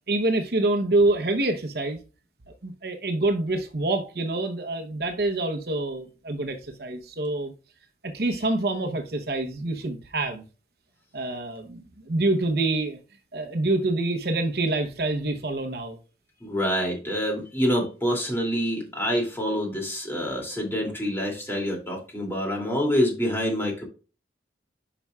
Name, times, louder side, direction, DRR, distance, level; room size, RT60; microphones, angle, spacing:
voice 1, 0.1-2.0 2.6-7.5 8.0-10.4 11.1-13.0 13.3-16.0, right 2 dB, 55° right, 0.9 m, -26 dB
voice 2, 16.4-23.8, equal, 15° left, 2.6 m, -26 dB
9.8 x 6.0 x 2.3 m
head